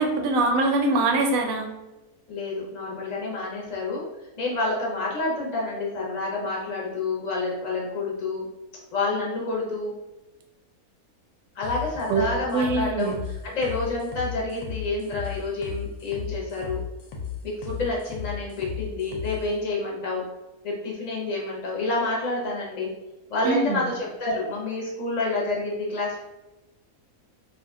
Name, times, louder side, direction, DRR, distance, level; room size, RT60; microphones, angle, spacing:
voice 1, 0.0-1.7 12.1-12.3 12.5-13.2 23.4-23.8, right 3 dB, 75° right, 3 dB, 1.0 m, -23 dB
voice 2, 2.3-4.1 4.4-8.5 8.9-9.9 11.5-16.8 17.4-20.2 20.6-22.9 23.3-26.2, left 2 dB, 35° left, -3 dB, 0.7 m, -28 dB
sound 1, 11.6-19.4, left 8 dB, 70° left, 0.9 m, -35 dB
2.6 x 2.3 x 3.5 m, 1.0 s
omnidirectional pair, 1.5 m